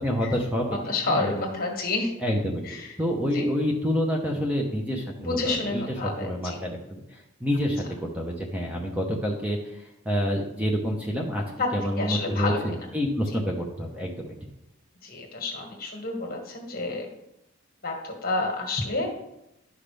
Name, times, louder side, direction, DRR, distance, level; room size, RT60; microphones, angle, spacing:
voice 1, 0.0-1.5 2.2-2.6 3.0-5.8 6.2-11.4 11.7-14.3, equal, 5° right, 0 dB, 0.9 m, -28 dB
voice 2, 0.9-2.1 2.6-3.0 3.3-3.5 5.2-6.6 11.6-11.7 12.0-12.6 13.3-13.4 15.0-17.1 17.8-19.2, left 2 dB, 45° left, 1 dB, 1.8 m, -29 dB
11.0 x 5.8 x 3.4 m, 0.87 s
head